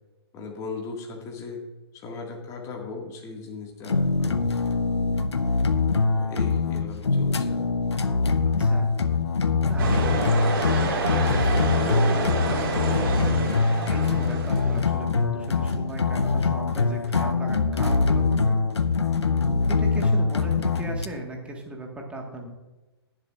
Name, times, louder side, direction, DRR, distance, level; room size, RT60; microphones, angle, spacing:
voice 1, 0.3-1.6 1.9-4.4 4.8-5.3 6.2-7.9, left 4 dB, 25° left, 0 dB, 1.8 m, -38 dB
sound 1, 3.9-21.1, left 4 dB, 85° left, 0.7 m, -23 dB
voice 2, 8.6-8.9 9.7-13.2 13.9-18.6 19.7-22.5, right 1 dB, 10° right, 0 dB, 1.5 m, -37 dB
sound 2, 9.8-14.9, right 3 dB, 55° right, 2.6 m, -28 dB
20.0 x 7.6 x 2.4 m, 1.1 s
figure-of-eight pair, 125°, 14 cm